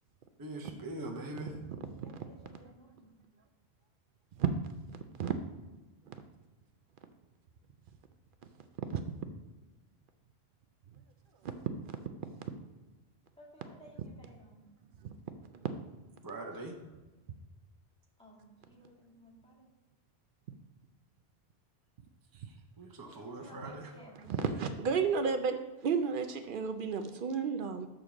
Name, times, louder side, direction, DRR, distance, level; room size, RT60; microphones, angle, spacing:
voice 1, 0.4-1.5 16.2-16.7 22.3-23.9, right 2 dB, 25° right, 2 dB, 0.7 m, -42 dB
voice 2, 2.0-3.1 13.4-14.6 18.2-19.7 23.0-24.4, equal, 5° left, -4 dB, 2.0 m, -57 dB
voice 3, 24.2-27.9, right 6 dB, 60° right, 8 dB, 0.7 m, -32 dB
6.6 x 3.9 x 5.8 m, 1.2 s
omnidirectional pair, 1.1 m